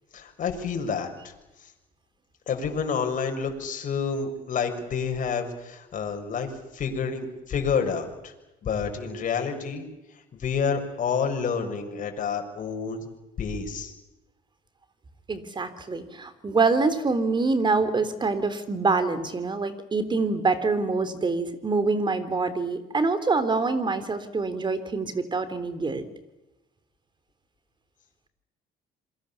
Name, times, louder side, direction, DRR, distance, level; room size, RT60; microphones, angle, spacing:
voice 1, 0.1-1.1 2.5-8.3 8.6-9.8 10.3-13.1 13.4-13.9, left 6 dB, 50° left, 4 dB, 6.4 m, -29 dB
voice 2, 15.3-26.0, right 3 dB, 25° right, 12 dB, 3.6 m, -25 dB
27.5 x 23.0 x 7.3 m, 1.0 s
cardioid pair, 110°, 17 cm